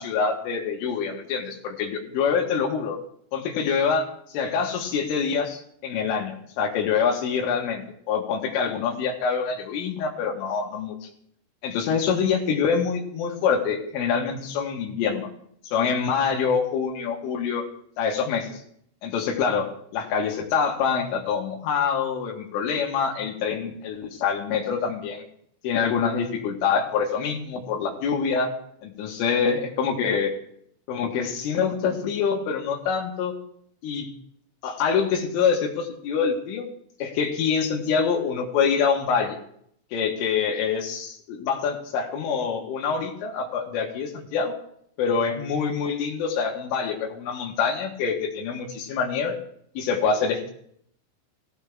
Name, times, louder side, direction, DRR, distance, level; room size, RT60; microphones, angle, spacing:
voice 1, 0.0-3.0 3.3-11.0 11.6-15.3 15.6-17.7 18.0-18.6 19.0-25.2 25.6-28.5 28.8-30.3 30.9-33.3 33.8-34.1 34.6-36.7 37.0-39.4 39.9-44.5 45.0-49.4 49.8-50.5, left 6 dB, 85° left, 0 dB, 4.1 m, -25 dB
19.0 x 16.0 x 3.6 m, 0.69 s
omnidirectional pair, 5.6 m